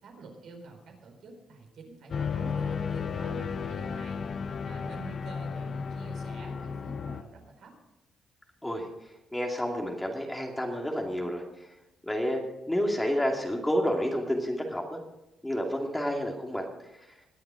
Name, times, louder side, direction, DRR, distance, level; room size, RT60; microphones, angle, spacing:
voice 1, 0.0-4.2 4.6-7.7, right 3 dB, 70° right, 2 dB, 4.3 m, -47 dB
sound 1, 2.1-7.2, left 6 dB, 50° left, 0.7 m, -33 dB
voice 2, 9.3-11.4 12.0-12.4 12.7-15.0 15.4-16.6 17.0-17.1, equal, 10° left, 1 dB, 2.5 m, -29 dB
21.0 x 7.7 x 5.0 m, 0.93 s
cardioid pair, 90°, 0 cm